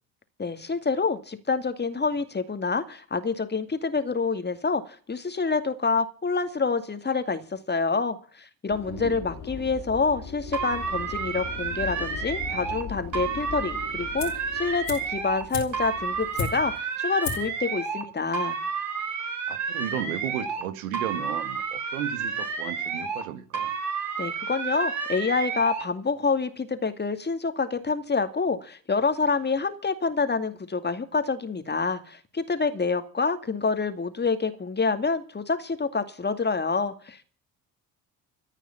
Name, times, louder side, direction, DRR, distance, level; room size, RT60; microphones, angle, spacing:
voice 1, 0.4-18.6 24.2-37.2, left 4 dB, 25° left, 9 dB, 2.4 m, -27 dB
sound 1, 8.7-16.7, left 6 dB, 55° left, 3.6 m, -40 dB
voice 2, 8.9-9.2 19.5-23.7, right 10 dB, 70° right, 11 dB, 1.7 m, -34 dB
sound 2, 10.5-12.8 13.1-15.4 15.7-18.0 18.3-20.7 20.9-23.3 23.5-25.9, right 5 dB, 40° right, 4.6 m, -31 dB
sound 3, 14.2-14.5 14.8-16.8 17.2-17.6 17.9-18.0, left 6 dB, 80° left, 4.0 m, -34 dB
14.5 x 9.0 x 8.7 m, 0.43 s
figure-of-eight pair, 55°, 44 cm